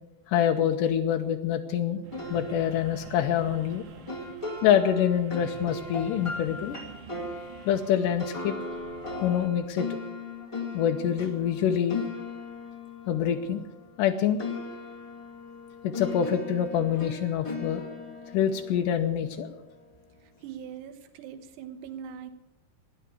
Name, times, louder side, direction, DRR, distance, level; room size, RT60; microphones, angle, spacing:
voice 1, 0.3-2.0 2.3-3.8 4.6-6.8 7.7-8.6 9.2-9.9 10.7-12.0 13.1-13.6 14.0-14.4 15.8-17.8 18.3-19.5, left 9 dB, 80° left, 4 dB, 1.9 m, -25 dB
sound 1, 2.0-9.5, right 6 dB, 65° right, 3.2 m, -48 dB
sound 2, 2.1-14.1 14.4-19.6, left 3 dB, 50° left, 0.3 m, -39 dB
voice 2, 20.2-22.3, right 8 dB, 85° right, 9 dB, 3.2 m, -41 dB
14.5 x 10.5 x 8.2 m, 0.99 s
omnidirectional pair, 4.7 m